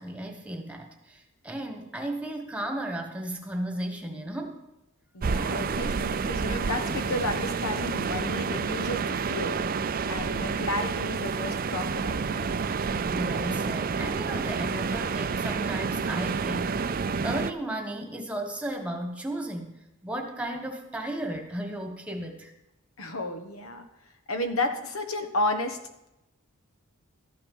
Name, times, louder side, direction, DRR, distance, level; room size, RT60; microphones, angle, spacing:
voice 1, 0.0-4.6 13.0-19.7 20.0-22.5, right 1 dB, 5° right, 4 dB, 1.4 m, -34 dB
voice 2, 5.1-9.6 10.1-12.5 23.0-23.9 24.3-25.8, left 1 dB, 80° left, 7 dB, 1.3 m, -32 dB
sound 1, 5.2-17.5, right 5 dB, 45° right, 0.4 m, -29 dB
13.5 x 9.0 x 5.4 m, 0.92 s
head